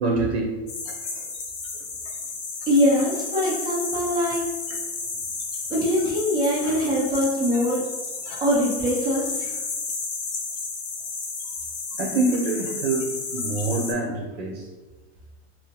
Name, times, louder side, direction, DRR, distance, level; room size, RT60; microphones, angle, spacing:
voice 1, 0.0-0.4 12.0-14.6, right 3 dB, 75° right, 0 dB, 0.8 m, -25 dB
sound 1, 0.7-13.9, left 4 dB, 35° left, 0.6 m, -32 dB
voice 2, 2.7-4.5 5.7-7.8 8.4-9.5, equal, 15° right, -6 dB, 0.6 m, -23 dB
3.8 x 2.0 x 2.9 m, 1.2 s
supercardioid pair, 155°, 32 cm